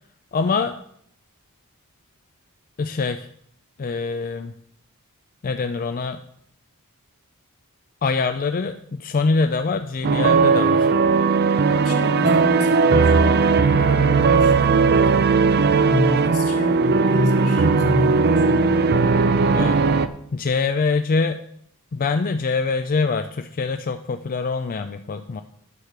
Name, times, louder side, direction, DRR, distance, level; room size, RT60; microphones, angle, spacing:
voice 1, 0.3-0.7 2.8-3.3 3.8-4.5 5.4-6.2 8.0-10.9 15.1-15.3 19.5-19.8 20.3-21.4 21.9-25.4, left 4 dB, 40° left, 8 dB, 0.4 m, -24 dB
sound 1, 10.0-20.1, right 4 dB, 45° right, 0.6 m, -17 dB
voice 2, 11.7-15.1 15.7-19.1, left 1 dB, 80° left, 1 dB, 2.2 m, -28 dB
9.8 x 5.9 x 6.5 m, 0.68 s
head